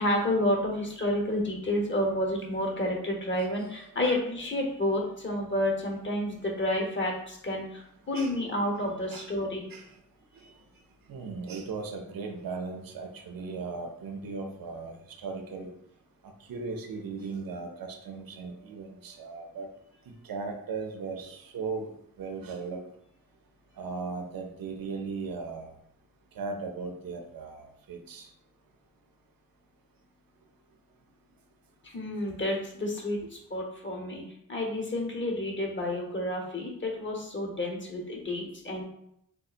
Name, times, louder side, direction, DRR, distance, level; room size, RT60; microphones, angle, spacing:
voice 1, 0.0-9.6 31.8-33.2 33.5-34.2 34.5-38.8, left 1 dB, 35° left, 1.0 m, -30 dB
voice 2, 11.1-14.9 15.2-15.7 16.5-19.7 20.3-21.9 22.2-22.8 23.8-25.7 26.4-28.2, right 4 dB, 85° right, 0.6 m, -37 dB
3.7 x 2.7 x 2.4 m
cardioid pair, 60°, 34 cm